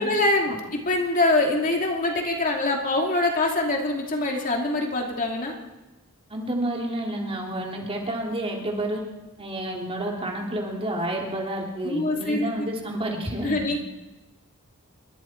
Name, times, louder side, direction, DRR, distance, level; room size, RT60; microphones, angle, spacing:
voice 1, 0.0-5.5 11.8-12.7 13.4-13.8, left 2 dB, 40° left, 1 dB, 2.7 m, -24 dB
voice 2, 6.3-9.0 9.4-13.6, right 1 dB, 25° right, -1 dB, 3.2 m, -30 dB
27.5 x 22.5 x 4.6 m, 1.1 s
head